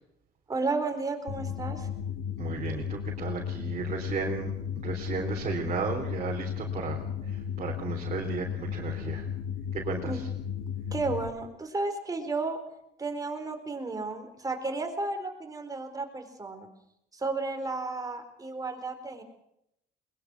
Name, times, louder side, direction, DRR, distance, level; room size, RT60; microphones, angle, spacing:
voice 1, 0.5-1.9 10.0-10.2 10.9-12.6 13.0-16.7 17.1-19.2, right 3 dB, 20° right, 5 dB, 4.3 m, -33 dB
sound 1, 1.3-11.3, left 8 dB, 90° left, 2.4 m, -34 dB
voice 2, 2.4-4.5 4.8-7.0 7.3-9.2 9.8-10.1, right 5 dB, 40° right, -1 dB, 3.8 m, -34 dB
22.0 x 21.0 x 6.3 m, 0.79 s
cardioid pair, 110°, 17 cm